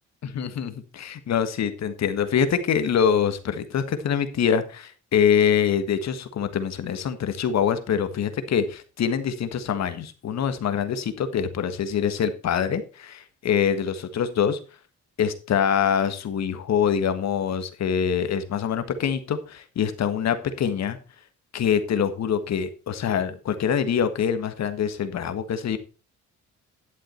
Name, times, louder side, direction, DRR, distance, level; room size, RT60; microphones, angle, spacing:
voice 1, 0.2-14.6 15.2-21.0 21.5-25.8, left 8 dB, 60° left, 10 dB, 1.6 m, -24 dB
11.0 x 7.5 x 4.4 m, 0.34 s
cardioid pair, 90°, 30 cm